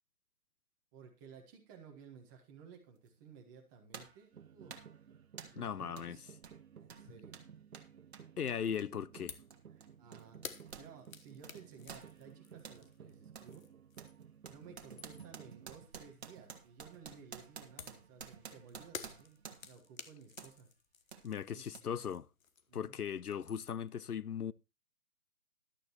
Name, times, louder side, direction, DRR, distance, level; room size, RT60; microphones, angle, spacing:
voice 1, 0.9-4.8 5.4-6.2 6.8-7.4 8.1-8.2 9.7-13.7 14.5-19.4 19.6-20.7 21.5-22.1 22.7-23.0, right 6 dB, 15° right, 1.3 m, -56 dB
sound 1, 3.1-3.2 3.9-4.2 4.7-5.0 5.4-5.6 6.0-6.1 6.4-10.9 11.2-12.8 13.3-13.5 14.0-19.8 20.4-20.6 21.1-21.2 21.7-21.8, right 6 dB, 45° right, 1.5 m, -52 dB
sound 2, 4.3-15.8, right 8 dB, 70° right, 0.8 m, -56 dB
voice 2, 5.6-6.2 8.4-9.4 21.2-22.3 22.7-24.5, left 8 dB, 80° left, 0.7 m, -38 dB
sound 3, 9.3-9.6 9.8-14.3 14.7-15.4 17.8-22.9 23.2-23.9, left 6 dB, 65° left, 1.2 m, -52 dB
13.5 x 12.0 x 3.0 m
figure-of-eight pair, 155°, 45 cm